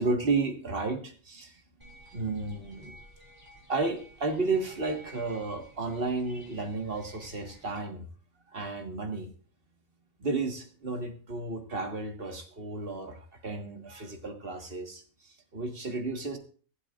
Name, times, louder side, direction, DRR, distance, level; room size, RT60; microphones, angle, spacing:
voice 1, 0.0-3.0 3.7-8.1 8.5-9.3 10.2-16.4, right 3 dB, 40° right, 4 dB, 1.8 m, -33 dB
sheepbells day, 1.8-7.8, right 1 dB, 15° right, 2.8 m, -53 dB
24.0 x 8.3 x 2.5 m, 0.40 s
omnidirectional pair, 1.5 m